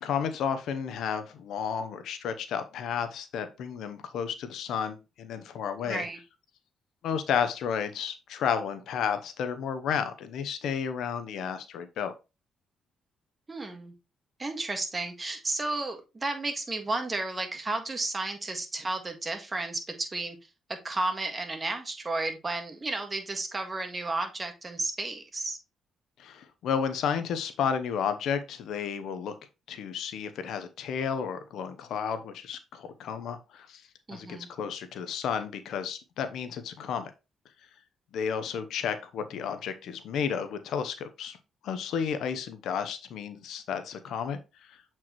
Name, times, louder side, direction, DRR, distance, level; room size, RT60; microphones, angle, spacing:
voice 1, 0.0-6.1 7.0-12.1 26.2-29.3 29.7-33.8 34.1-37.1 38.1-41.4 41.6-44.4 44.7-44.8, left 7 dB, 75° left, 10 dB, 0.8 m, -32 dB
voice 2, 5.8-6.2 13.5-13.9 14.4-20.4 20.8-25.6 34.1-34.5, right 2 dB, 25° right, 5 dB, 1.6 m, -33 dB
7.6 x 4.5 x 3.0 m, 0.27 s
cardioid pair, 90°, 0 cm